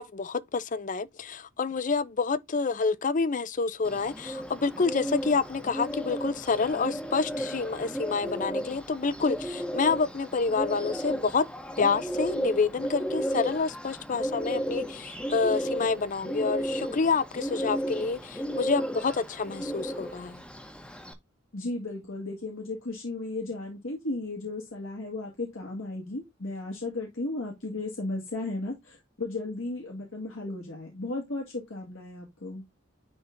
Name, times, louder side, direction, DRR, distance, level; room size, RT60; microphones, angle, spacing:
voice 1, 0.0-11.5 11.8-20.4, left 4 dB, 40° left, 0.5 m, -28 dB
Bird, 3.8-21.1, equal, 5° left, 1.0 m, -34 dB
voice 2, 21.5-32.6, left 2 dB, 85° left, 2.0 m, -35 dB
10.5 x 3.6 x 2.6 m
head